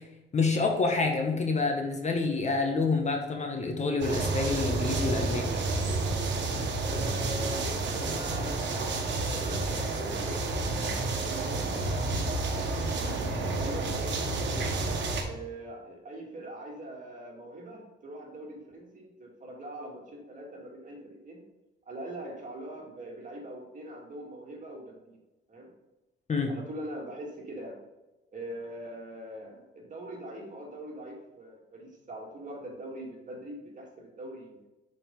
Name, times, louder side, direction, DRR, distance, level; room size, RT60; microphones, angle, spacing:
voice 1, 0.3-5.6 26.3-26.5, left 3 dB, 35° left, 3 dB, 1.2 m, -28 dB
sound 1, 4.0-15.2, right 3 dB, 65° right, 1.4 m, -30 dB
voice 2, 6.8-8.6 9.3-10.9 11.3-12.0 12.5-14.6 15.2-21.4 21.9-25.2 25.5-25.7 26.5-27.8 28.3-34.7, right 1 dB, 40° right, -1 dB, 2.2 m, -42 dB
6.7 x 5.1 x 3.8 m, 1.0 s
cardioid pair, 90°, 20 cm